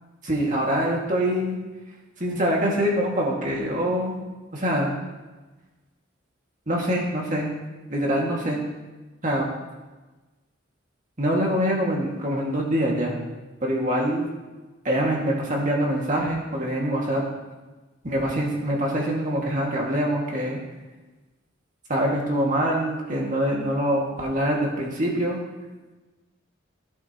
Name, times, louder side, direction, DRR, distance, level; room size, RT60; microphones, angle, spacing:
voice 1, 0.2-1.6 2.2-4.2 4.5-4.9 6.7-7.5 7.9-8.6 9.2-9.5 11.2-13.2 13.6-14.3 14.8-17.2 18.0-20.6 21.9-25.4, equal, 40° right, -2 dB, 2.1 m, -24 dB
16.0 x 8.3 x 3.0 m, 1.2 s
head